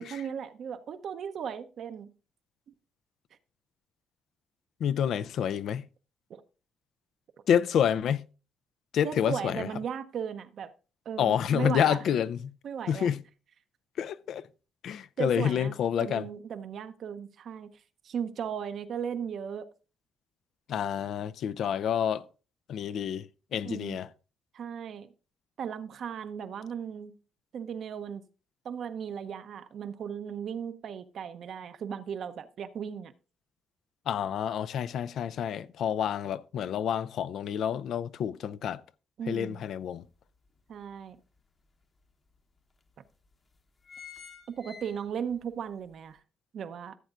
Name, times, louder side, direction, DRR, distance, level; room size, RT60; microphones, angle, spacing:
voice 1, 0.0-2.1 6.3-6.4 9.0-10.7 11.1-12.2 12.6-13.1 15.2-15.7 16.0-17.7 18.0-19.7 23.6-24.0 24.5-25.1 25.6-27.1 27.5-28.2 28.6-33.1 39.2-39.6 40.7-41.2 44.5-46.2 46.5-47.0, right 7 dB, 65° right, 0.7 m, -36 dB
voice 2, 4.8-5.8 7.5-8.2 8.9-9.7 11.2-12.5 12.9-13.2 14.0-14.4 14.8-16.3 20.7-22.2 22.7-24.1 34.1-38.8 39.3-40.0, left 9 dB, 70° left, 0.4 m, -28 dB
sound 1, 39.6-39.7 40.2-41.4 42.0-42.1 42.3-42.4 43.1-43.3 43.6-45.4 45.8-45.9, left 7 dB, 35° left, 0.9 m, -49 dB
14.5 x 7.9 x 2.5 m
cardioid pair, 90°, 0 cm